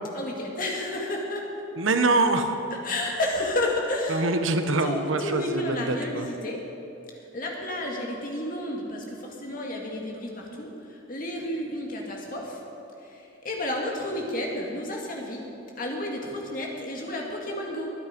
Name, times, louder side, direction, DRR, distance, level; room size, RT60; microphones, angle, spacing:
voice 1, 0.1-1.5 2.8-4.3 4.8-6.6 7.3-12.6 13.0-15.4 15.8-17.9, left 1 dB, 45° left, 0 dB, 2.2 m, -31 dB
voice 2, 1.8-2.5 4.1-6.3, right 3 dB, 80° right, 8 dB, 1.0 m, -24 dB
23.5 x 8.4 x 5.2 m, 2.8 s
head